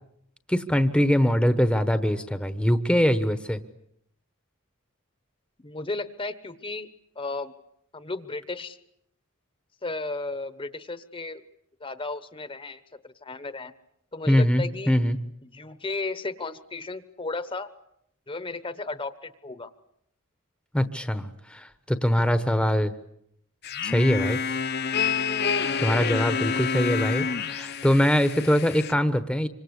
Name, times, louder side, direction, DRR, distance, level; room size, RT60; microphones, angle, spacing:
voice 1, 0.5-3.6 14.3-15.2 20.7-22.9 23.8-24.4 25.8-29.5, equal, 5° left, 10 dB, 1.1 m, -23 dB
voice 2, 5.6-6.9 7.1-7.5 7.9-8.8 9.8-11.4 11.8-13.7 14.1-15.0 15.4-17.7 18.3-19.7 25.7-26.4, left 3 dB, 25° left, 12 dB, 1.1 m, -34 dB
sound 1, 23.6-28.9, left 6 dB, 50° left, 1.1 m, -28 dB
26.5 x 25.5 x 8.2 m, 0.74 s
head